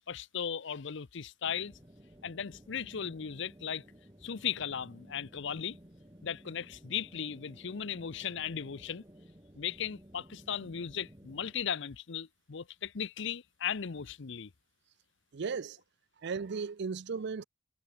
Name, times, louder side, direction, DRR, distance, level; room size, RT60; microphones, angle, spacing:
voice 1, 0.1-1.7 2.2-3.8 4.2-5.8 6.2-9.0 9.6-14.5, left 8 dB, 70° left, 0.7 m, -37 dB
sound 1, 1.4-11.6, equal, 20° right, 2.9 m, -56 dB
voice 2, 15.3-15.8 16.2-17.4, right 5 dB, 60° right, 0.5 m, -35 dB
head